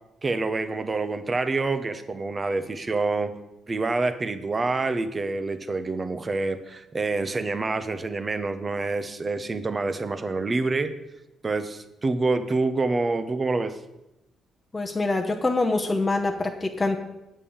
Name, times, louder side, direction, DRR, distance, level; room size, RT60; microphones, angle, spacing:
voice 1, 0.2-3.4 3.7-10.9 11.4-13.8, right 3 dB, 30° right, 10 dB, 0.8 m, -27 dB
voice 2, 14.7-17.0, left 2 dB, 20° left, 2 dB, 0.9 m, -25 dB
8.3 x 5.5 x 7.1 m, 0.93 s
cardioid pair, 90°, 0 cm